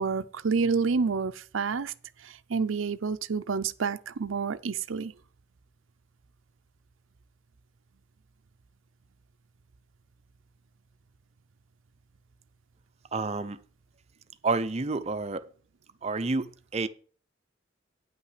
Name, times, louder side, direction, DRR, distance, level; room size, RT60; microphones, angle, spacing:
voice 1, 0.0-1.9 2.2-5.1, right 5 dB, 90° right, 0.6 m, -29 dB
voice 2, 13.1-13.6 14.4-15.5 16.0-16.9, right 3 dB, 35° right, 0.6 m, -29 dB
9.4 x 5.7 x 5.7 m
head